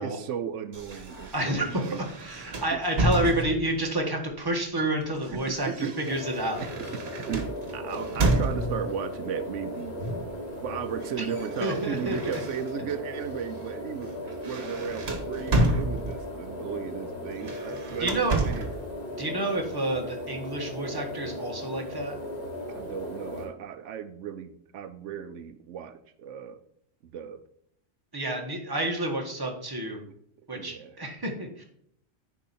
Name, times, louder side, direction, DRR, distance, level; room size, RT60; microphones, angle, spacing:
voice 1, 0.0-2.0 2.7-2.8 3.2-3.4 5.7-6.0 6.3-10.0 10.6-18.7 22.7-26.6 27.0-27.4 30.5-31.0, right 8 dB, 85° right, 10 dB, 1.0 m, -36 dB
sound 1, 0.7-3.8 4.8-9.0 10.0-10.4 10.7-13.0 13.4-13.6 14.0-16.4 17.3-18.8, right 2 dB, 60° right, 1.5 m, -31 dB
voice 2, 1.3-1.6 2.2-6.6 11.2-11.3 11.6-12.3 18.0-18.3 19.2-22.1 28.1-30.0 30.5-31.6, right 1 dB, 20° right, 1 dB, 1.6 m, -29 dB
sound 2, 6.1-23.4, left 1 dB, 50° left, 3.6 m, -37 dB
9.9 x 4.8 x 4.2 m, 0.71 s
omnidirectional pair, 1.2 m